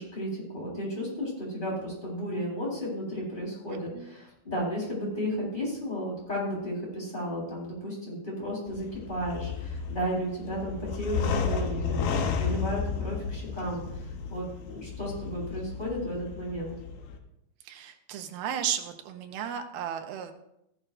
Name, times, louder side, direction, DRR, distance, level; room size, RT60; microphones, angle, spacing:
voice 1, 0.0-13.8 14.3-16.7, equal, 15° left, -5 dB, 4.2 m, -33 dB
sound 1, 8.7-17.2, left 6 dB, 90° left, 2.8 m, -33 dB
voice 2, 17.7-20.3, right 9 dB, 85° right, 5 dB, 2.8 m, -34 dB
14.5 x 11.0 x 2.6 m, 0.83 s
omnidirectional pair, 4.2 m